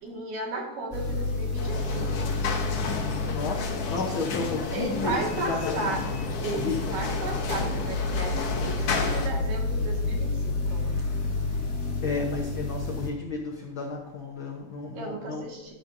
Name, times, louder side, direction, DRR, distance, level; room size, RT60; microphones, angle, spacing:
voice 1, 0.0-2.4 4.7-6.0 6.4-10.8 15.0-15.7, right 3 dB, 75° right, -1 dB, 3.5 m, -34 dB
sound 1, 0.9-13.1, left 3 dB, 35° left, 1.4 m, -30 dB
sound 2, 1.6-9.3, left 4 dB, 65° left, 1.5 m, -32 dB
voice 2, 3.3-6.0 6.5-7.0 10.9-11.7 12.0-15.5, left 4 dB, 90° left, 0 dB, 1.1 m, -33 dB
11.0 x 10.5 x 2.7 m, 0.98 s
omnidirectional pair, 3.8 m